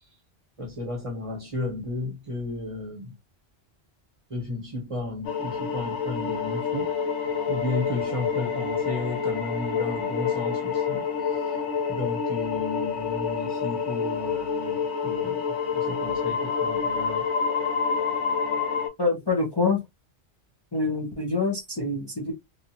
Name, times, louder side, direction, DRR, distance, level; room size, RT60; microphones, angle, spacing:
voice 1, 0.6-3.1 4.3-6.9 7.5-11.0 11.9-15.4 15.8-17.2, left 2 dB, 30° right, 1.1 m, -33 dB
sound 1, 5.2-18.9, left 6 dB, 85° left, 1.0 m, -28 dB
voice 2, 19.0-19.8 20.7-22.3, left 3 dB, 25° left, 0.7 m, -25 dB
2.8 x 2.4 x 2.7 m
omnidirectional pair, 1.1 m